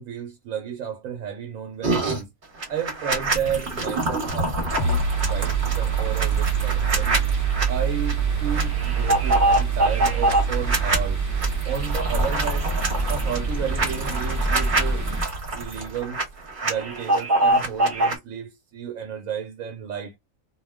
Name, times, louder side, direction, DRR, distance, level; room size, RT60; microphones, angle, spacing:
voice 1, 0.0-2.3 2.7-7.2 7.7-11.2 11.7-12.8 13.1-15.1 15.5-16.2 16.6-20.1, right 8 dB, 80° right, 1.1 m, -32 dB
sound 1, 1.8-2.2 2.6-7.7 8.1-8.2 8.5-11.0 11.4-16.2 16.5-18.1, right 2 dB, 40° right, 1.0 m, -24 dB
sound 2, 4.8-16.1, right 10 dB, 75° left, 1.0 m, -27 dB
sound 3, 4.8-15.2, right 1 dB, 20° right, 0.6 m, -29 dB
2.5 x 2.1 x 3.4 m
omnidirectional pair, 1.4 m